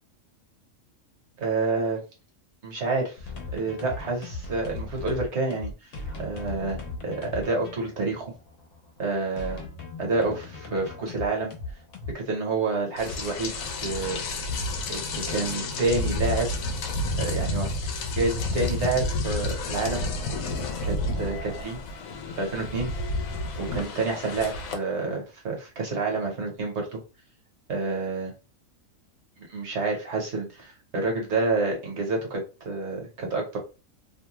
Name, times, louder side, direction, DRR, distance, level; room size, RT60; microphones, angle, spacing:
voice 1, 1.4-2.0 2.6-3.2 3.5-5.9 6.2-8.3 9.0-9.6 10.0-11.5 12.1-13.5 13.8-14.2 14.9-16.5 17.2-17.7 18.2-20.0 20.9-21.8 22.4-22.9 23.6-27.0 27.7-28.3 29.5-33.6, right 3 dB, 60° right, 1 dB, 1.1 m, -28 dB
sound 1, 3.2-12.1, left 3 dB, 70° left, 1.1 m, -38 dB
Rain, 13.0-24.7, left 2 dB, 90° left, 1.0 m, -30 dB
2.7 x 2.2 x 2.9 m, 0.31 s
omnidirectional pair, 1.4 m